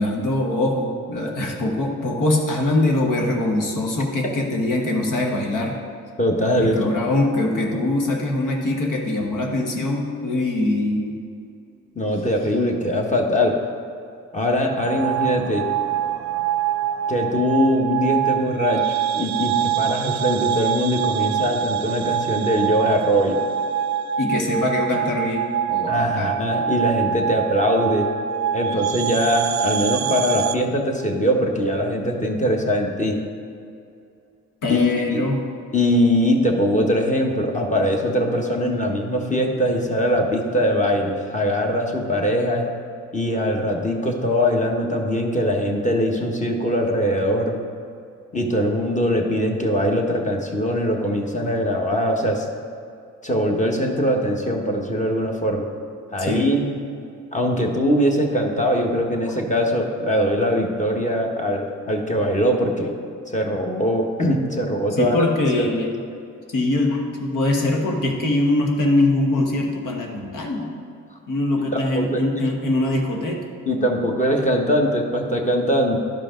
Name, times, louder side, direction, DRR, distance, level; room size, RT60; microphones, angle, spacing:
voice 1, 0.0-5.8 6.6-11.2 24.2-26.4 34.6-35.4 56.2-56.5 64.9-66.0 66.5-70.7 71.3-73.4, left 2 dB, 75° left, 0 dB, 1.4 m, -22 dB
voice 2, 6.2-6.8 11.9-13.5 14.3-15.7 17.1-23.4 25.9-28.1 28.5-33.2 34.7-35.2 35.7-42.7 43.1-47.6 48.3-52.5 53.2-55.6 56.1-56.6 57.3-62.9 63.3-65.3 65.5-65.7 71.7-72.2 73.7-76.0, equal, 25° left, 1 dB, 1.4 m, -21 dB
sound 1, 14.8-30.6, right 9 dB, 60° right, 0.5 m, -25 dB
12.0 x 5.0 x 3.8 m, 2.5 s
cardioid pair, 65°, 32 cm